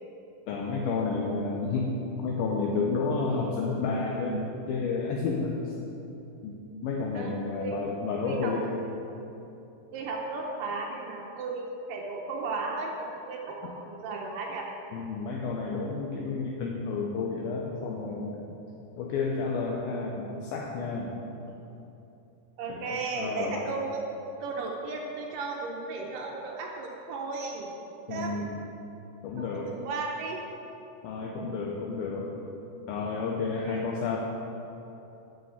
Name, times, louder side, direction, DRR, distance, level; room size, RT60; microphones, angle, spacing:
voice 1, 0.5-5.7 6.4-6.5 6.8-8.8 14.9-18.5 19.0-21.2 22.7-23.7 28.1-28.6 29.2-29.7 31.0-32.3 32.9-34.2, left 4 dB, 75° left, -1 dB, 2.3 m, -31 dB
voice 2, 7.1-7.8 8.2-8.5 9.9-14.7 22.6-24.0 24.4-27.7 28.1-28.4 29.4-30.4 33.6-33.8, right 3 dB, 75° right, 0 dB, 2.0 m, -35 dB
9.5 x 6.2 x 7.1 m, 2.9 s
omnidirectional pair, 4.8 m